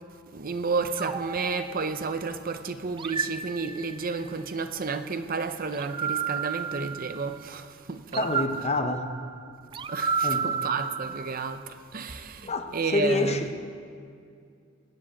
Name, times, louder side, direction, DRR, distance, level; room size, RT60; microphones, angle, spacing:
voice 1, 0.3-8.3 9.9-13.5, right 4 dB, 45° right, 0.7 m, -31 dB
sound 1, 1.0-2.3 3.0-4.3 5.7-7.5 8.1-11.6, right 6 dB, 25° right, 0.3 m, -32 dB
voice 2, 8.2-9.1 10.2-10.6 12.4-13.4, left 2 dB, 30° left, 0.9 m, -27 dB
19.5 x 7.9 x 8.8 m
head